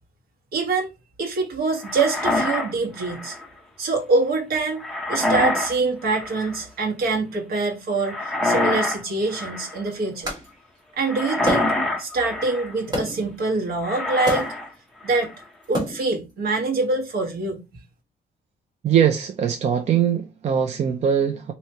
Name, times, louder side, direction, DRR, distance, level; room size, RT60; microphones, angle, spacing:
voice 1, 0.5-0.9 1.2-3.4 3.8-10.3 11.0-11.7 12.0-14.5 15.0-15.3 15.7-17.6, right 3 dB, 65° right, 1.4 m, -25 dB
sound 1, 1.8-3.5 4.8-5.8 6.0-6.6 8.0-9.0 9.3-9.8 11.0-12.7 13.8-14.7 15.0-15.4, left 2 dB, ahead, 0.7 m, -26 dB
sound 2, 10.2-10.5 11.5-12.0 12.9-13.3 14.2-14.7 15.6-16.2, equal, 25° right, 1.7 m, -28 dB
voice 2, 18.8-21.5, right 8 dB, 40° right, 0.5 m, -21 dB
4.5 x 2.8 x 2.8 m
cardioid pair, 170°, 17 cm